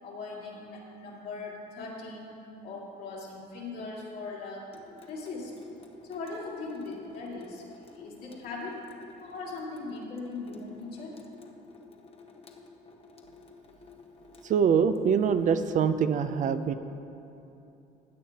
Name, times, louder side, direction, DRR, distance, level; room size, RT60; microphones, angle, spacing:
voice 1, 0.0-4.7 5.0-5.6 6.0-8.8 9.2-11.2, left 3 dB, 65° left, -4 dB, 2.4 m, -40 dB
Water tap faucet / Sink (filling or washing) / Drip, 4.7-15.5, left 3 dB, 35° left, 0.9 m, -52 dB
voice 2, 14.4-16.7, right 7 dB, 50° right, 10 dB, 0.5 m, -24 dB
16.0 x 8.8 x 2.9 m, 2.8 s
cardioid pair, 110°, 17 cm